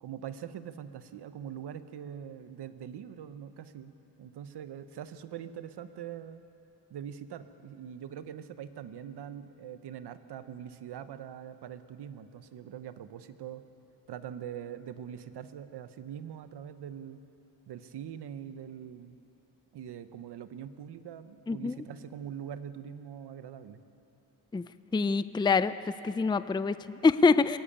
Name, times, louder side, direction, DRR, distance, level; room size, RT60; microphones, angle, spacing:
voice 1, 0.0-6.4 6.9-13.6 14.1-17.2 17.7-19.2 19.7-23.8, right 9 dB, 90° right, 11 dB, 0.9 m, -43 dB
voice 2, 24.9-25.7 26.0-27.6, left 4 dB, 10° left, 14 dB, 0.4 m, -25 dB
22.5 x 14.5 x 8.8 m, 2.9 s
cardioid pair, 100°, 39 cm